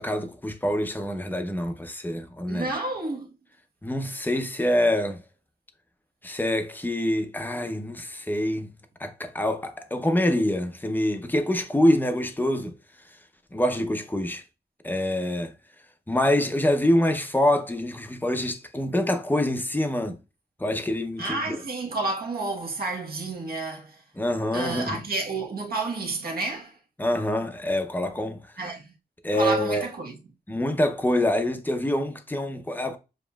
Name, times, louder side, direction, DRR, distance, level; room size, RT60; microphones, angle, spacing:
voice 1, 0.0-2.7 3.8-5.2 6.2-8.7 9.0-12.7 13.5-14.4 14.8-15.5 16.1-20.2 20.6-21.5 24.2-25.0 27.0-28.4 29.2-29.9 30.5-33.0, left 1 dB, 10° left, 0.6 m, -25 dB
voice 2, 2.5-3.3 21.2-24.0 24.5-26.8 28.6-28.9 29.3-30.2, right 3 dB, 60° right, 1.2 m, -30 dB
7.1 x 2.9 x 2.3 m
wide cardioid pair, 145°, 18 cm